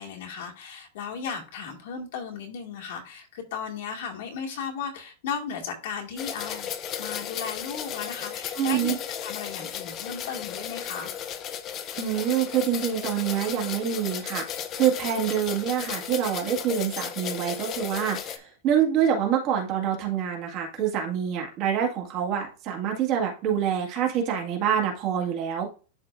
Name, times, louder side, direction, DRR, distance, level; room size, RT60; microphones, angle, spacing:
voice 1, 0.0-6.7 7.0-9.0 9.2-11.1, left 6 dB, 60° left, 0 dB, 2.1 m, -35 dB
sound 1, 6.2-18.4, left 9 dB, 25° left, 0.6 m, -35 dB
voice 2, 8.6-9.0 12.0-25.7, right 9 dB, 35° right, 0 dB, 1.9 m, -26 dB
11.5 x 3.9 x 2.5 m, 0.35 s
supercardioid pair, 170°, 0 cm